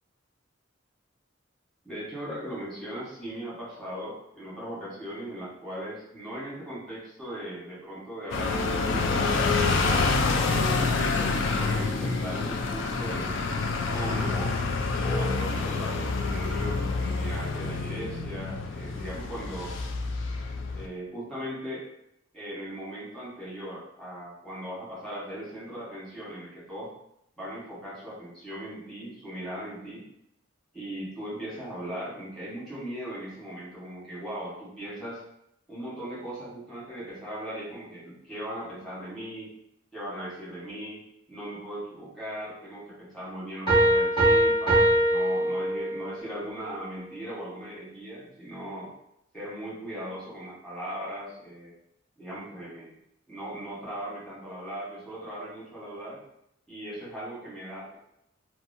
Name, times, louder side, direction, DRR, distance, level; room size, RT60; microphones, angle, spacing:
voice 1, 1.8-9.2 9.6-14.6 15.0-19.8 20.7-21.9 22.3-26.9 27.4-30.0 30.7-35.2 35.7-39.5 39.9-41.0 41.3-48.9 49.3-51.7 52.2-53.0 53.3-56.2 56.7-58.0, right 1 dB, ahead, -9 dB, 1.2 m, -38 dB
sound 1, 8.3-20.9, left 3 dB, 65° left, 0.3 m, -27 dB
sound 2, 43.7-46.2, right 1 dB, 25° left, 1.0 m, -22 dB
2.8 x 2.3 x 2.6 m, 0.77 s
head